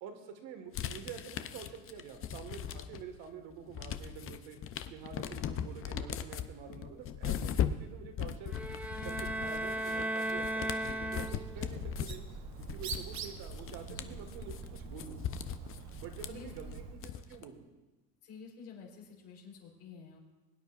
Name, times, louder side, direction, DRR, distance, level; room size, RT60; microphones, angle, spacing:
voice 1, 0.0-4.6 4.9-8.5 9.0-12.2 12.6-15.2 16.0-17.0 17.3-17.7, right 7 dB, 65° right, 5 dB, 1.8 m, -47 dB
sound 1, 0.7-3.2 3.5-17.4, left 9 dB, 35° left, 0.6 m, -39 dB
sound 2, 8.5-11.7, right 1 dB, 5° right, 0.6 m, -36 dB
Bird, 11.0-17.0, right 5 dB, 45° right, 1.1 m, -45 dB
voice 2, 13.9-14.2 16.3-16.7 18.2-20.2, left 5 dB, 80° left, -2 dB, 4.1 m, -50 dB
22.0 x 9.4 x 2.5 m, 1.2 s
supercardioid pair, 110°, 38 cm